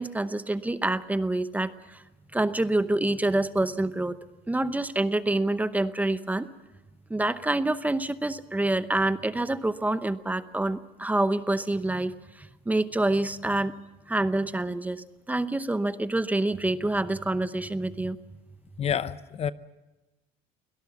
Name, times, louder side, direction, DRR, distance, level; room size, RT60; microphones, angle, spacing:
voice 1, 0.0-2.0 2.3-4.2 4.5-6.5 7.1-13.7 14.1-18.2, right 2 dB, 10° right, 13 dB, 0.8 m, -27 dB
voice 2, 18.8-19.5, left 8 dB, 40° left, 15 dB, 0.8 m, -28 dB
24.0 x 17.5 x 7.1 m, 1.1 s
cardioid pair, 100°, 16 cm